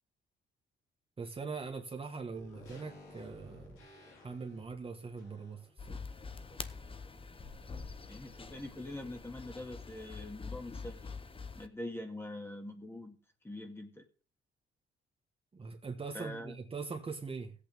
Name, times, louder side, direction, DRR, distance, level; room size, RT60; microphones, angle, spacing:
voice 1, 1.2-3.8 4.2-6.0 15.5-17.5, right 4 dB, 30° right, 1.4 m, -42 dB
sound 1, 2.3-6.8 7.1-7.2, left 2 dB, 85° left, 4.1 m, -56 dB
sound 2, 5.8-11.7, left 4 dB, 25° left, 0.9 m, -45 dB
voice 2, 8.0-11.1 11.5-13.2 13.4-14.1 16.1-16.6, left 1 dB, 10° left, 2.0 m, -44 dB
16.5 x 8.4 x 3.5 m
cardioid pair, 90°, 20 cm